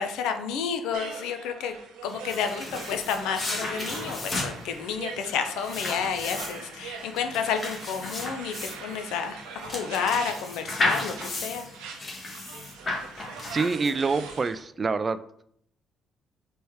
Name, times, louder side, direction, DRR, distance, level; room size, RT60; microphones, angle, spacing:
voice 1, 0.0-1.8 2.0-11.9, left 7 dB, 80° left, 7 dB, 0.5 m, -30 dB
sound 1, 0.9-14.6, right 5 dB, 85° right, 0.7 m, -42 dB
sound 2, 2.1-14.2, left 2 dB, 40° left, 1.4 m, -34 dB
voice 2, 13.5-15.2, right 4 dB, 35° right, 13 dB, 0.3 m, -26 dB
4.2 x 3.3 x 3.5 m, 0.68 s
supercardioid pair, 65°, 0 cm